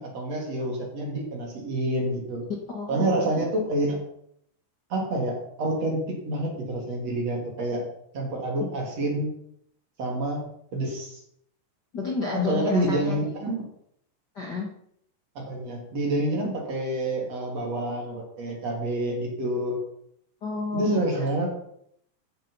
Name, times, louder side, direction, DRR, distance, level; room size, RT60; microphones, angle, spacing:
voice 1, 0.0-2.4 2.9-4.0 4.9-7.8 8.1-9.3 10.0-10.4 10.7-11.2 12.3-13.7 15.4-19.8 20.7-21.5, right 1 dB, 40° right, -1 dB, 3.7 m, -28 dB
voice 2, 2.7-3.3 11.9-13.3 14.3-14.7 20.4-21.0, left 4 dB, 85° left, -2 dB, 0.9 m, -30 dB
14.0 x 7.2 x 5.6 m, 0.70 s
omnidirectional pair, 4.9 m